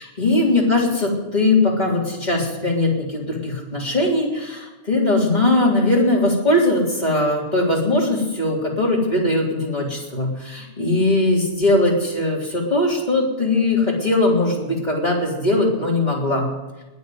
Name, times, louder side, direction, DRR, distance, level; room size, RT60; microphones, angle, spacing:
voice 1, 0.0-16.5, left 2 dB, 10° left, -3 dB, 3.1 m, -20 dB
20.5 x 7.2 x 9.6 m, 1.1 s
omnidirectional pair, 4.7 m